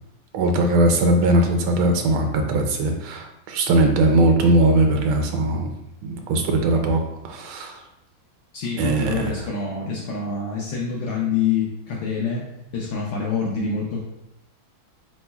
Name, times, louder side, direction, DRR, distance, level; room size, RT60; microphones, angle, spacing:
voice 1, 0.3-5.7 6.0-7.8 8.8-9.5, right 1 dB, 85° right, 4 dB, 1.5 m, -20 dB
voice 2, 8.5-12.4 12.7-14.0, left 5 dB, 70° left, -3 dB, 1.3 m, -26 dB
7.5 x 3.1 x 2.3 m, 0.86 s
omnidirectional pair, 2.2 m